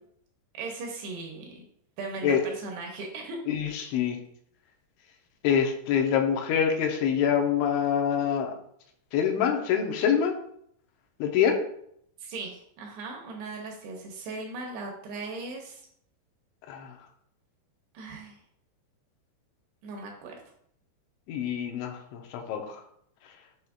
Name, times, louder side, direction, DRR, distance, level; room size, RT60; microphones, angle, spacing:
voice 1, 0.5-1.7 2.0-3.4 3.9-4.0 12.2-15.8 17.9-18.4 19.8-20.4, right 3 dB, 75° right, 0 dB, 2.7 m, -38 dB
voice 2, 3.5-4.2 5.4-8.5 9.1-10.3 11.2-11.6 16.7-17.0 21.3-22.8, left 8 dB, 80° left, 3 dB, 3.0 m, -25 dB
7.8 x 5.6 x 2.3 m, 0.68 s
omnidirectional pair, 5.3 m